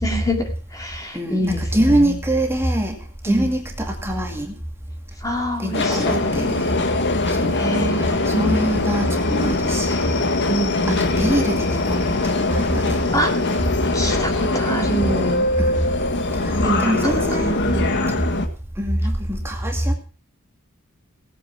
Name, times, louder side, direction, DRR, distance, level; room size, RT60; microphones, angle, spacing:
voice 1, 0.0-2.2 3.3-3.5 5.2-6.2 7.5-8.8 10.5-11.4 13.1-13.5 13.9-15.5 16.6-18.0, right 1 dB, 15° left, 3 dB, 2.4 m, -26 dB
voice 2, 1.1-3.0 3.2-4.5 5.6-6.7 7.3-7.6 7.9-10.3 10.9-13.0 15.6-15.9 16.3-17.6 18.1-18.2 18.8-19.9, right 1 dB, 10° right, 2 dB, 2.3 m, -23 dB
Subway metro underground, 5.7-18.5, left 2 dB, 50° left, 1.7 m, -22 dB
17.5 x 9.1 x 5.8 m, 0.38 s
head